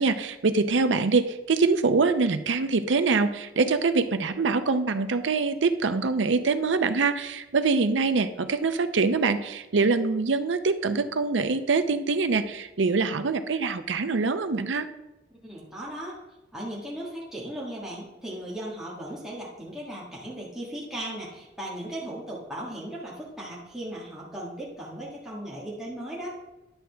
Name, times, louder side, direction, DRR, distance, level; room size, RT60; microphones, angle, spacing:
voice 1, 0.0-14.9, right 4 dB, 85° right, 10 dB, 0.6 m, -24 dB
voice 2, 15.4-16.2 16.5-26.4, right 1 dB, 5° right, -6 dB, 1.6 m, -37 dB
10.5 x 6.3 x 3.4 m, 1.0 s
head